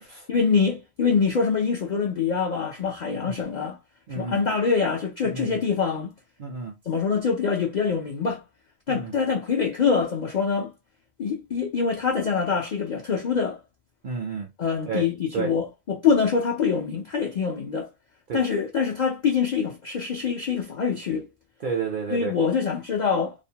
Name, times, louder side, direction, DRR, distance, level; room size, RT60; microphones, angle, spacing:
voice 1, 0.3-3.8 4.2-6.1 6.9-8.4 8.9-10.7 11.2-13.6 14.6-17.9 18.3-21.3 22.1-23.3, left 5 dB, 70° left, 0.4 m, -24 dB
voice 2, 4.1-4.4 5.2-5.6 6.4-6.7 8.9-9.1 14.0-14.5 14.9-15.0 15.3-15.5 18.3-18.4 21.6-22.3, right 5 dB, 60° right, 0.5 m, -31 dB
2.4 x 2.1 x 2.7 m
omnidirectional pair, 1.4 m